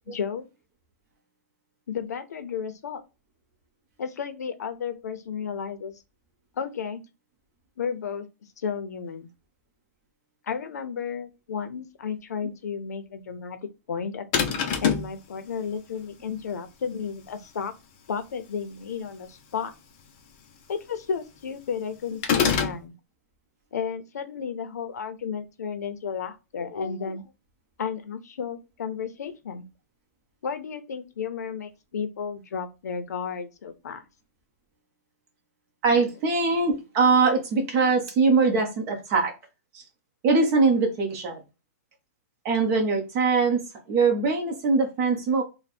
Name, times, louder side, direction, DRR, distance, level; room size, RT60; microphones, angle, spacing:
voice 1, 0.1-0.4 1.9-3.0 4.0-6.0 6.6-7.0 7.8-8.3 8.6-9.3 10.5-13.6 13.9-14.3 14.8-17.7 18.1-19.7 20.7-22.9 23.7-27.3 27.8-29.6 30.4-34.0, left 6 dB, 75° left, 0.7 m, -33 dB
sound 1, 14.3-15.1 22.2-22.8, left 7 dB, 30° left, 0.6 m, -23 dB
voice 2, 35.8-39.3 40.2-41.4 42.4-43.6 43.9-45.4, right 4 dB, 25° right, 1.1 m, -22 dB
3.3 x 2.3 x 4.2 m
hypercardioid pair, 170°, 9 cm